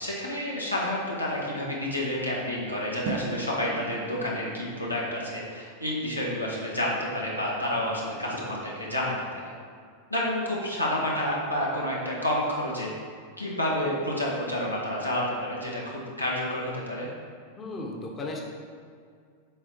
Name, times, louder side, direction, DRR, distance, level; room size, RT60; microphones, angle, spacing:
voice 1, 0.0-9.5 10.1-12.9 13.4-17.1, left 1 dB, 90° left, -5 dB, 1.4 m, -29 dB
sound 1, 3.1-9.3, right 4 dB, 55° right, 0.9 m, -42 dB
voice 2, 17.6-18.4, left 2 dB, 20° left, 0 dB, 1.1 m, -35 dB
7.6 x 4.3 x 4.5 m, 2.2 s
figure-of-eight pair, 90°, 0 cm